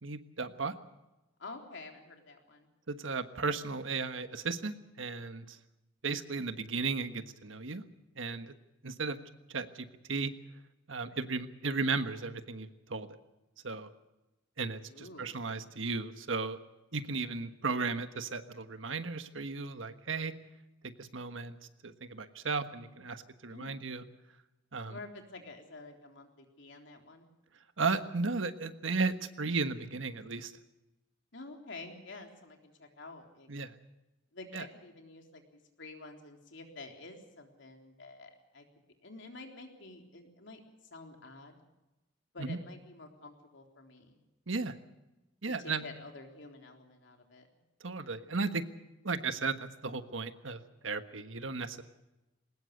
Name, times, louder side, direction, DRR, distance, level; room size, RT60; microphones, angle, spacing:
voice 1, 0.0-0.7 2.9-5.6 6.0-7.8 8.2-8.5 8.8-9.2 9.5-10.3 10.9-13.1 13.6-13.9 14.6-16.6 16.9-20.3 20.8-21.6 21.8-24.0 24.7-24.9 27.8-30.5 33.5-33.7 34.5-34.6 42.4-42.6 44.5-44.7 45.4-45.8 47.8-48.6 49.0-51.8, right 4 dB, 80° right, 9 dB, 1.4 m, -35 dB
voice 2, 1.4-2.7 14.9-15.5 23.5-23.9 24.9-27.3 31.3-33.5 34.3-38.7 39.0-40.6 40.9-41.6 42.3-44.2 45.4-47.5, left 3 dB, 70° left, 3 dB, 3.7 m, -49 dB
21.5 x 19.5 x 6.7 m, 1.0 s
head